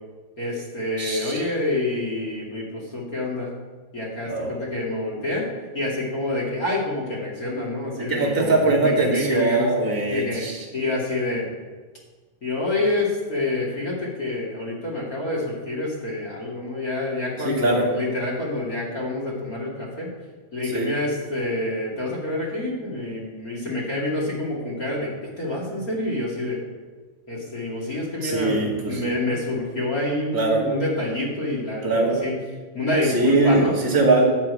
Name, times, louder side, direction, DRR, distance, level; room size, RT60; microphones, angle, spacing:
voice 1, 0.4-3.5 3.9-5.5 5.7-9.7 10.1-10.4 10.7-11.5 12.4-20.1 20.5-26.6 27.3-32.4 32.7-33.7, left 2 dB, 30° left, -4 dB, 1.7 m, -27 dB
voice 2, 1.0-1.4 4.3-4.6 8.0-10.6 17.4-17.8 20.6-20.9 28.2-29.0 30.3-30.6 31.8-32.2 33.1-34.2, right 2 dB, 20° right, -5 dB, 0.5 m, -21 dB
12.0 x 5.8 x 8.3 m, 1.3 s
omnidirectional pair, 5.1 m